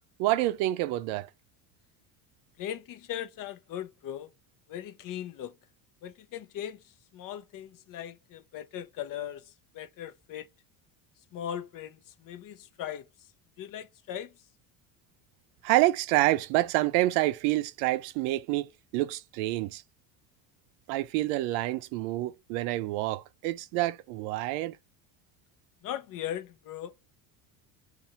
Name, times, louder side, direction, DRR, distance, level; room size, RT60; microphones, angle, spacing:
voice 1, 0.2-1.3 15.6-19.8 20.9-24.8, right 17 dB, 90° right, 0.5 m, -27 dB
voice 2, 2.6-4.3 4.7-5.5 6.0-6.8 7.1-9.4 9.7-10.5 11.3-13.0 13.6-14.3 25.8-26.9, left 10 dB, 50° left, 0.6 m, -38 dB
2.7 x 2.5 x 4.1 m
cardioid pair, 120°, 43 cm